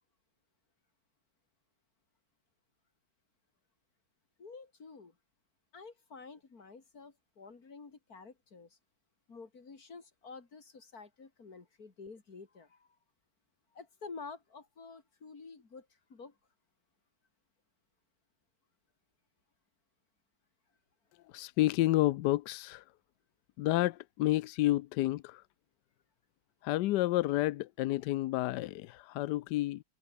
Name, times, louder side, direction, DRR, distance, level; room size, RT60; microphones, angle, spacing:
voice 1, 4.4-5.1 5.7-8.8 9.3-12.9 13.7-16.4, left 4 dB, 45° left, 3.3 m, -50 dB
voice 2, 21.3-22.8 23.6-25.4 26.6-29.8, left 16 dB, 75° left, 1.0 m, -30 dB
omnidirectional pair, 2.2 m